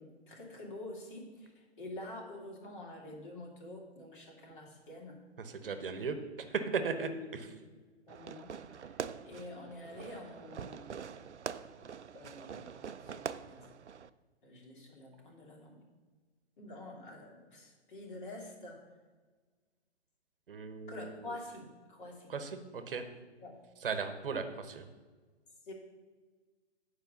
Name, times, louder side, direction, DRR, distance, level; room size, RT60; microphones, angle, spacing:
voice 1, 0.0-5.2 6.9-7.5 8.1-8.9 9.2-11.2 12.1-13.7 14.4-15.8 16.6-18.8 20.9-22.3 23.4-23.6 25.6-25.7, left 2 dB, 50° left, -1 dB, 2.6 m, -47 dB
voice 2, 5.4-6.2 6.5-7.4 20.5-21.1 22.3-23.0 23.8-24.9, right 5 dB, 55° right, 8 dB, 1.0 m, -36 dB
Fireworks, 8.1-14.1, right 7 dB, 85° right, 0.5 m, -44 dB
9.1 x 4.8 x 6.6 m, 1.4 s
figure-of-eight pair, 125°, 34 cm